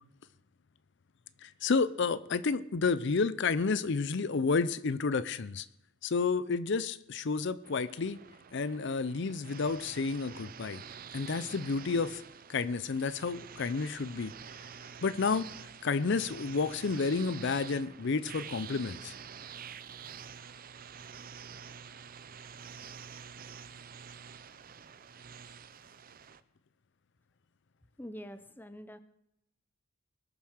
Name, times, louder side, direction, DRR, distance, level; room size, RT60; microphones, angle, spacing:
voice 1, 1.4-5.7 6.0-8.2 8.5-10.8 11.1-12.2 12.5-14.3 15.0-15.5 15.8-19.1, left 4 dB, 55° left, 16 dB, 0.5 m, -30 dB
sound 1, 7.6-26.4, right 7 dB, 40° right, 0.6 m, -48 dB
voice 2, 28.0-29.0, equal, 10° left, 12 dB, 0.6 m, -45 dB
21.0 x 7.0 x 6.4 m, 0.81 s
head